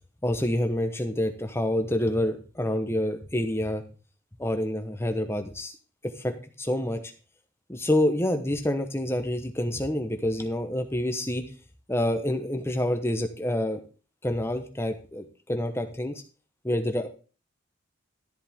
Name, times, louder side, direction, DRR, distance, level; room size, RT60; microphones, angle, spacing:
voice 1, 0.2-3.8 4.4-5.8 6.0-7.0 7.7-11.4 11.9-13.8 14.2-16.2 16.6-17.1, left 1 dB, 10° left, 7 dB, 1.0 m, -27 dB
13.0 x 7.7 x 3.6 m, 0.36 s
head